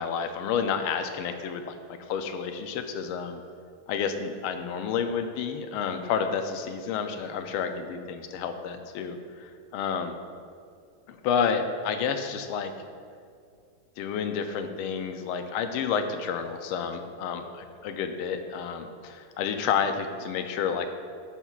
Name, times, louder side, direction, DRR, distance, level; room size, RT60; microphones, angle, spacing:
voice 1, 0.0-3.4 3.9-10.2 11.1-12.7 14.0-20.9, left 6 dB, 90° left, 7 dB, 1.5 m, -30 dB
11.0 x 5.8 x 2.3 m, 2.3 s
omnidirectional pair, 2.3 m